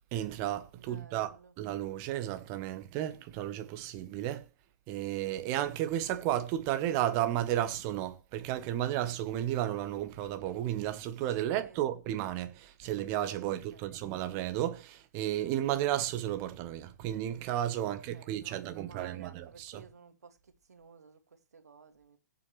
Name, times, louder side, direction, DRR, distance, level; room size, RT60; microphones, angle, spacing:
voice 1, 0.1-4.5 4.9-19.8, right 12 dB, 25° right, 1.1 m, -33 dB
voice 2, 0.7-1.5 11.4-11.9 13.3-14.0 17.8-22.2, right 5 dB, 60° right, 2.2 m, -55 dB
17.0 x 7.8 x 3.2 m
figure-of-eight pair, 130°, 10 cm